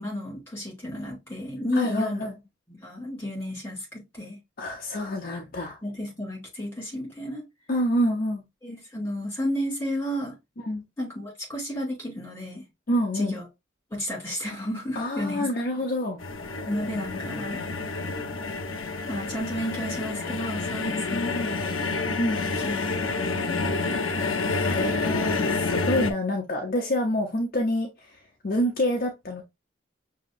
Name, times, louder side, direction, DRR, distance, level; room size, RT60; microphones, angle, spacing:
voice 1, 0.0-2.3 2.7-4.4 5.8-7.4 8.6-10.4 11.0-12.6 13.1-13.4 13.9-15.9 16.6-17.6 19.1-21.8 22.6-24.0, equal, 10° left, 2.6 m, -32 dB
voice 2, 1.7-2.3 4.6-5.8 7.7-8.4 10.6-10.8 12.9-13.4 15.0-16.2 20.8-21.3 22.2-22.4 24.7-27.9 28.4-29.4, equal, 45° left, 0.6 m, -27 dB
sound 1, 16.2-26.1, left 3 dB, 85° left, 0.6 m, -28 dB
6.0 x 2.8 x 2.4 m
head